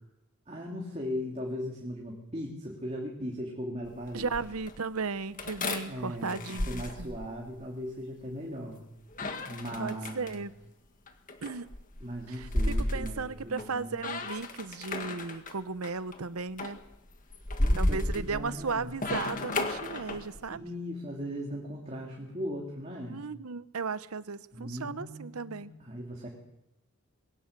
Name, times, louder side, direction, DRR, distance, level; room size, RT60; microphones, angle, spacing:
voice 1, 0.5-4.3 5.9-8.8 9.5-10.4 12.0-14.0 17.6-18.9 20.5-23.2 24.5-26.3, equal, 30° right, -1 dB, 2.9 m, -38 dB
sound 1, 3.8-4.8 5.4-7.6 9.1-10.4 11.1-13.7 14.0-15.5 15.8-16.2 16.6-20.5, left 1 dB, 40° left, 1.8 m, -33 dB
voice 2, 4.1-7.2 9.8-10.5 11.4-11.7 12.3-16.8 17.8-20.6 23.1-25.7, right 4 dB, 85° right, 15 dB, 0.8 m, -35 dB
22.0 x 18.0 x 6.7 m, 0.88 s
head